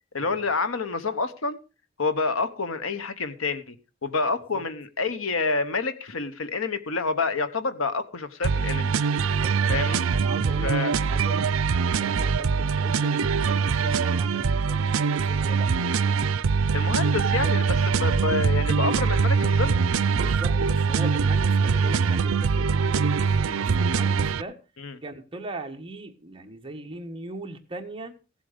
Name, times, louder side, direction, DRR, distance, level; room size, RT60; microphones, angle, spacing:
voice 1, 0.1-1.6 2.0-3.7 4.0-8.9 9.7-10.0 10.6-10.9 16.7-19.8 24.8-25.0, left 4 dB, 80° left, 1.1 m, -28 dB
sound 1, 8.4-24.4, right 5 dB, 85° right, 0.5 m, -23 dB
voice 2, 9.2-9.5 9.8-16.2 20.1-24.6 25.0-28.1, right 2 dB, 25° right, 1.5 m, -40 dB
16.0 x 7.7 x 5.1 m
head